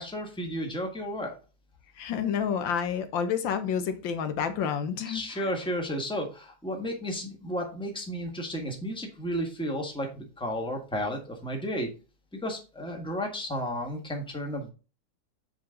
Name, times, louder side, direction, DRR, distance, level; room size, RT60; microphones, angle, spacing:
voice 1, 0.0-1.4 5.1-11.9 12.4-14.7, equal, 5° left, 1.5 m, -33 dB
voice 2, 2.0-5.5, left 7 dB, 85° left, 1.7 m, -29 dB
7.7 x 4.9 x 3.8 m
omnidirectional pair, 2.0 m